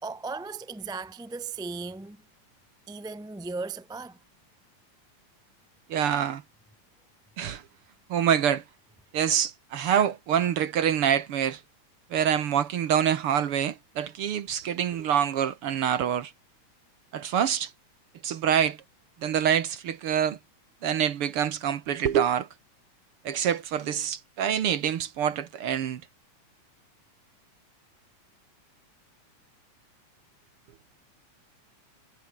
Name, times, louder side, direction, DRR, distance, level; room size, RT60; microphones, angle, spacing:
voice 1, 0.0-2.2 2.9-4.2, right 4 dB, 5° right, 0.4 m, -36 dB
voice 2, 5.9-6.4 7.4-7.6 8.1-8.6 9.1-11.6 12.1-16.3 17.1-17.7 18.2-18.8 19.2-20.4 20.8-22.5 23.2-26.0, right 9 dB, 60° right, 1.8 m, -26 dB
omnidirectional pair, 3.3 m